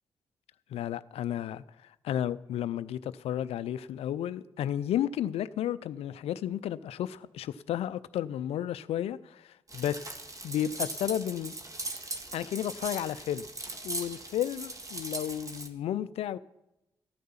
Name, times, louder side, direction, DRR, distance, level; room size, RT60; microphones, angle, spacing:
voice 1, 0.7-1.6 2.0-10.0 10.4-11.5 12.3-13.5 13.8-16.4, left 11 dB, 75° left, 0.5 m, -32 dB
sound 1, 9.7-15.7, right 2 dB, 35° right, 1.8 m, -39 dB
14.0 x 9.3 x 5.7 m
hypercardioid pair, 40°, 10 cm